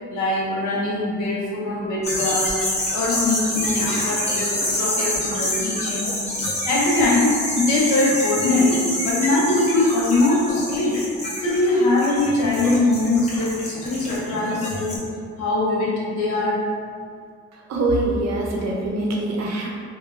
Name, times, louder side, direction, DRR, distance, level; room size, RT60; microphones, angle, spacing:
voice 1, 0.1-2.6 2.9-6.3 6.6-11.0 11.4-15.1 15.4-16.7, left 2 dB, 80° left, -4 dB, 0.7 m, -22 dB
sound 1, 2.0-15.0, left 1 dB, 20° left, 0.9 m, -27 dB
voice 2, 17.5-19.7, right 2 dB, 60° right, -1 dB, 0.6 m, -24 dB
2.9 x 2.3 x 2.4 m, 2.1 s
cardioid pair, 90°, 30 cm